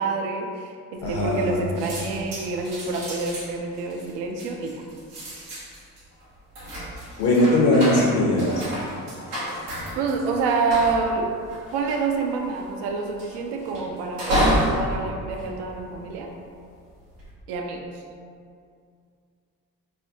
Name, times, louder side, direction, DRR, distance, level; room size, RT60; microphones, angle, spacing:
voice 1, 0.0-4.8 9.9-11.3 11.7-16.3 17.5-17.8, right 4 dB, 65° right, 3 dB, 0.5 m, -27 dB
voice 2, 1.0-1.6 7.2-8.5, left 1 dB, 55° left, -4 dB, 0.6 m, -20 dB
sound 1, 1.0-1.5 1.8-16.3 16.9-17.3, equal, 85° right, 0.9 m, -30 dB
3.3 x 2.2 x 2.7 m, 2.3 s
hypercardioid pair, 40°, 45 cm